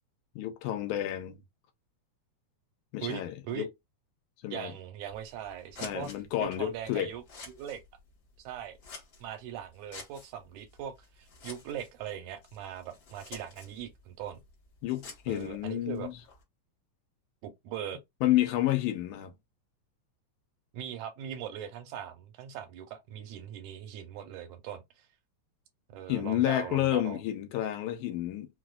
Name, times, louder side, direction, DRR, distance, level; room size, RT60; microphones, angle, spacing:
voice 1, 0.4-1.4 2.9-3.7 4.4-4.7 5.8-7.1 14.8-16.1 18.2-19.3 26.1-28.5, left 13 dB, 90° left, 2.1 m, -30 dB
voice 2, 3.0-3.7 4.5-6.1 6.4-7.8 8.4-8.8 9.2-14.4 15.3-16.1 17.4-18.0 20.7-24.8 25.9-27.2, right 9 dB, 80° right, 2.0 m, -40 dB
Scissors, 5.0-16.4, left 4 dB, 65° left, 0.9 m, -51 dB
5.0 x 2.1 x 2.3 m
omnidirectional pair, 3.5 m